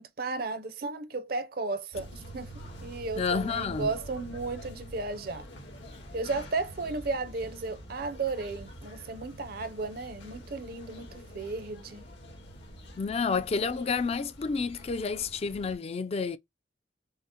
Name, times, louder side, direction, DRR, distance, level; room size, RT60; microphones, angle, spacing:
voice 1, 0.0-2.5 2.8-5.5 6.1-12.1, right 3 dB, 55° right, 0.6 m, -34 dB
sound 1, 1.9-15.8, equal, 85° left, 1.5 m, -46 dB
voice 2, 3.2-3.9 13.0-16.4, left 5 dB, 35° left, 0.3 m, -30 dB
5.6 x 2.1 x 2.8 m
head